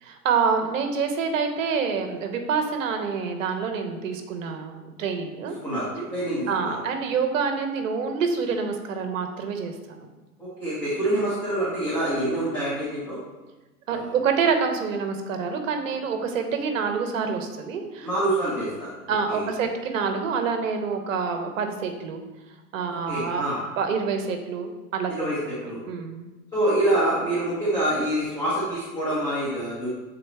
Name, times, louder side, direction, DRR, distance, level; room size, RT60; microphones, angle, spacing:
voice 1, 0.0-5.5 6.5-10.1 13.9-18.1 19.1-22.2 22.7-23.4 23.8-25.3 25.9-26.3, right 5 dB, 55° right, 5 dB, 0.9 m, -27 dB
voice 2, 6.1-6.8 10.4-13.2 13.9-14.1 18.0-18.9 19.3-19.5 23.1-23.6 25.1-25.4 25.6-25.8 26.5-29.9, right 1 dB, 10° left, -12 dB, 1.4 m, -26 dB
7.6 x 3.9 x 3.4 m, 1.1 s
supercardioid pair, 165°, 46 cm